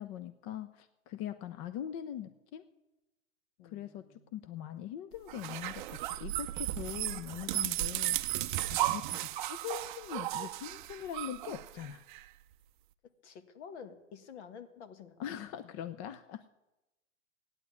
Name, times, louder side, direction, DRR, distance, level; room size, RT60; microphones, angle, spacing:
voice 1, 0.0-2.6 3.6-4.0 4.3-12.0 15.2-16.4, left 10 dB, 25° left, 11 dB, 0.5 m, -42 dB
voice 2, 3.6-4.2 13.2-15.2, left 7 dB, 55° left, 9 dB, 1.8 m, -50 dB
sound 1, 5.3-12.2, right 15 dB, 40° right, 0.5 m, -35 dB
15.0 x 9.9 x 8.3 m, 1.0 s
hypercardioid pair, 135°, 39 cm